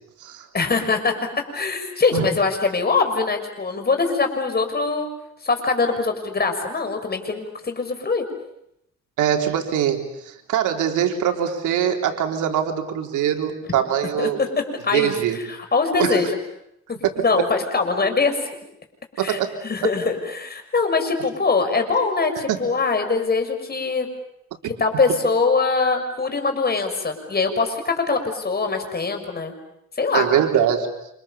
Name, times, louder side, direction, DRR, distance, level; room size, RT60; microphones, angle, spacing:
voice 1, 0.5-1.1 1.5-5.1 5.4-8.2 14.2-14.5 14.8-15.2 15.5-16.4 16.9-18.4 19.2-24.1 24.6-29.5 30.0-30.3, left 4 dB, 30° left, 6 dB, 6.3 m, -22 dB
voice 2, 9.2-14.4 14.9-15.4 16.0-16.3 17.0-17.2 19.2-19.5 19.8-19.9 22.5-22.6 24.6-24.7 30.1-30.9, right 9 dB, 85° right, 4 dB, 3.7 m, -22 dB
29.0 x 27.5 x 7.3 m, 0.79 s
cardioid pair, 90°, 30 cm